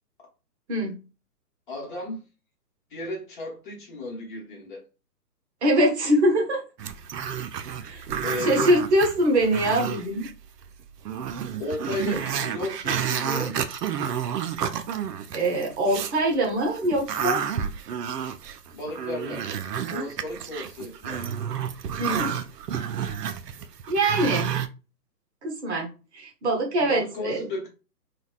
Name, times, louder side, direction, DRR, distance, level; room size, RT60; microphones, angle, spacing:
voice 1, 1.7-2.3 2.9-4.9 8.2-8.7 11.6-13.6 18.7-19.5 19.9-21.3 26.9-27.7, left 2 dB, 30° left, 0.9 m, -33 dB
voice 2, 5.6-6.6 7.8-10.3 15.3-17.4 22.0-22.4 23.9-24.5 25.4-27.5, right 1 dB, 45° right, 0.8 m, -23 dB
Growling, 6.8-10.3 10.7-10.8 11.1-16.2 16.6-24.7, right 8 dB, 75° right, 0.5 m, -30 dB
3.3 x 2.2 x 2.2 m
figure-of-eight pair, 135°, 48 cm